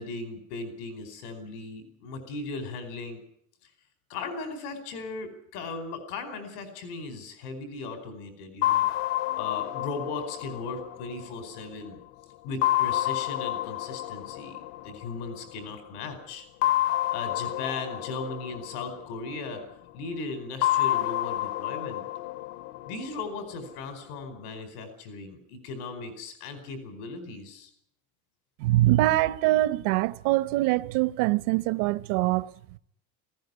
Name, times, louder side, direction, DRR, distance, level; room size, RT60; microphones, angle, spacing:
voice 1, 0.0-3.2 4.1-8.9 9.4-12.0 12.4-16.4 17.1-19.6 19.9-22.0 22.9-27.7, left 3 dB, 90° left, 4.8 m, -37 dB
sound 1, 8.6-11.9 12.6-15.5 16.6-19.7 20.6-23.7, left 15 dB, 60° left, 0.8 m, -29 dB
voice 2, 28.6-32.5, right 17 dB, 80° right, 1.1 m, -23 dB
19.0 x 16.5 x 9.7 m
cardioid pair, 140°, 44 cm